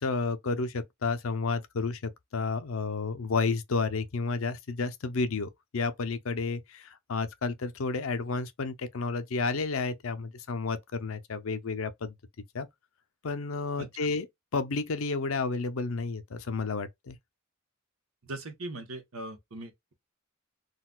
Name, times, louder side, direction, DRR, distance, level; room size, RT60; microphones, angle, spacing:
voice 1, 0.0-12.1 12.5-12.7 13.2-14.3 14.5-17.2, left 4 dB, 75° left, 0.6 m, -31 dB
voice 2, 18.3-19.9, right 2 dB, 85° right, 1.1 m, -40 dB
3.9 x 2.4 x 2.3 m
head